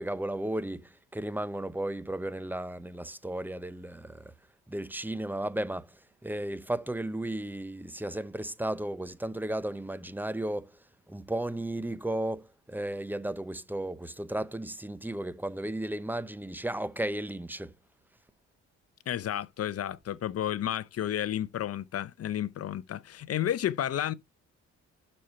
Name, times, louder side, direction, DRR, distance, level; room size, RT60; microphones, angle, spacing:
voice 1, 0.0-4.3 4.7-5.9 6.2-10.7 11.1-17.7, right 1 dB, 5° right, 0.7 m, -34 dB
voice 2, 19.1-24.1, left 11 dB, 55° left, 0.7 m, -31 dB
6.3 x 4.4 x 5.7 m
cardioid pair, 90°, 30 cm